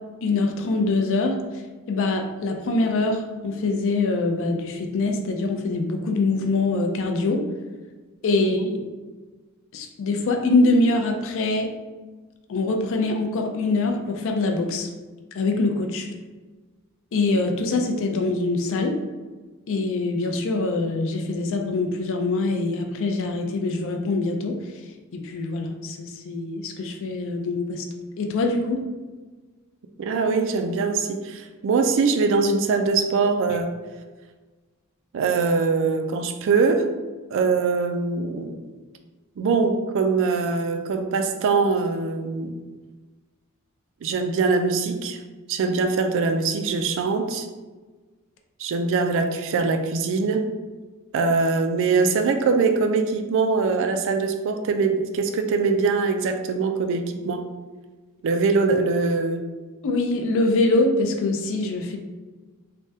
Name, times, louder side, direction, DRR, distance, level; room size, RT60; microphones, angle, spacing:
voice 1, 0.2-7.4 8.2-8.6 9.7-11.7 12.5-14.9 15.3-16.1 17.1-19.0 19.7-27.9 28.2-28.8 59.8-62.0, left 2 dB, 60° left, 4 dB, 0.4 m, -24 dB
voice 2, 8.4-8.7 30.0-33.7 35.1-36.9 37.3-38.6 39.4-42.6 44.0-45.2 45.5-47.5 48.6-50.5 51.1-57.5 58.2-59.4, right 4 dB, 60° right, 6 dB, 0.3 m, -22 dB
3.3 x 2.1 x 2.7 m, 1.3 s
head